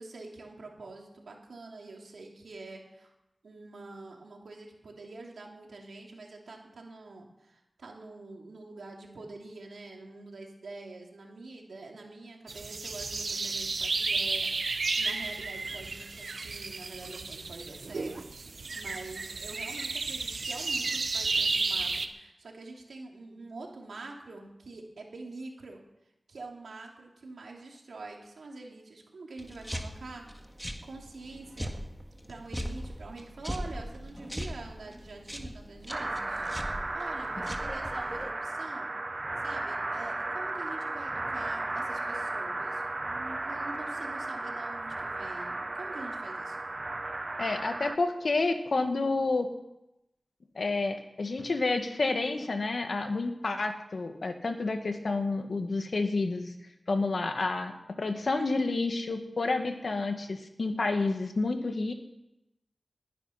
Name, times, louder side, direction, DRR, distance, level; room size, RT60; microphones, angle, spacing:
voice 1, 0.0-3.1 3.4-18.3 18.7-25.8 26.3-30.2 30.8-31.8 32.3-38.9 39.4-46.7, right 3 dB, 90° right, 1 dB, 2.9 m, -46 dB
sound 1, 12.5-22.1, right 3 dB, 70° right, 1.0 m, -32 dB
sound 2, 29.4-38.3, equal, ahead, 1.8 m, -40 dB
sound 3, 35.9-48.0, right 2 dB, 40° right, 0.8 m, -35 dB
voice 2, 47.4-49.5 50.5-56.5 56.9-57.7 58.0-61.9, left 3 dB, 65° left, 6 dB, 1.8 m, -29 dB
20.0 x 10.5 x 5.9 m, 0.90 s
wide cardioid pair, 60°, 0 cm